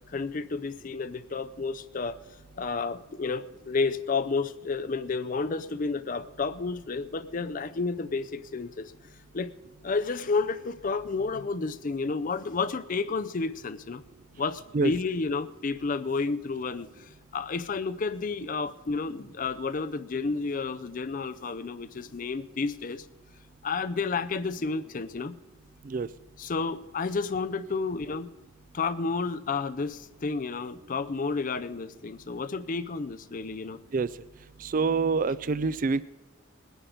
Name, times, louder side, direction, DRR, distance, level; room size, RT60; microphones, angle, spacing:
voice 1, 0.1-2.2 2.6-8.9 9.3-9.5 9.8-14.0 14.4-23.1 23.6-25.4 26.4-28.3 28.7-33.8, left 4 dB, 40° left, 11 dB, 0.5 m, -31 dB
voice 2, 34.6-36.0, right 4 dB, 40° right, 18 dB, 0.4 m, -26 dB
20.0 x 10.0 x 5.0 m, 1.2 s
head